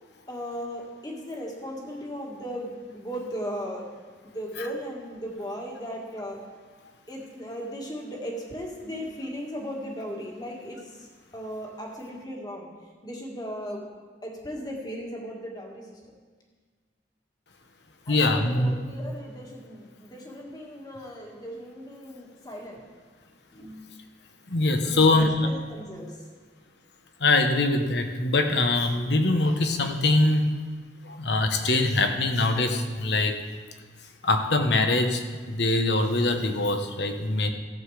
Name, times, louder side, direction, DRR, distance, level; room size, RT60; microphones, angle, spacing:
voice 1, 0.3-3.9 4.2-6.5 7.1-11.1 11.3-12.7 13.0-13.9 14.2-16.0 18.1-22.8 23.5-23.9 24.8-26.3 37.4-37.5, equal, 20° left, -1 dB, 1.8 m, -37 dB
voice 2, 18.1-18.7 24.5-25.5 27.2-30.5 31.0-33.4 34.2-37.5, left 2 dB, 65° left, 6 dB, 1.1 m, -23 dB
15.0 x 7.8 x 4.9 m, 1.5 s
head